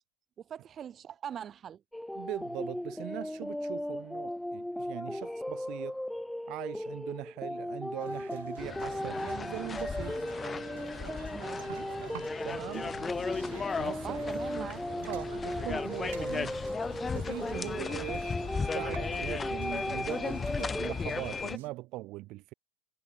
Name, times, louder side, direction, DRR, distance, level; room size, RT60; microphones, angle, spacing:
voice 1, 0.4-1.8 11.3-11.9 14.0-14.8, right 9 dB, 35° right, 5.9 m, -42 dB
sound 1, 1.9-20.9, left 1 dB, 5° left, 0.8 m, -37 dB
voice 2, 2.1-6.0 6.5-10.2 12.4-12.9 13.8-14.2 14.6-14.7 15.1-16.6 17.1-22.5, right 19 dB, 55° right, 4.4 m, -41 dB
sound 2, 8.0-21.7, right 16 dB, 75° right, 4.4 m, -49 dB
sound 3, 8.6-21.6, left 5 dB, 20° left, 2.1 m, -36 dB
hypercardioid pair, 95°, 0 cm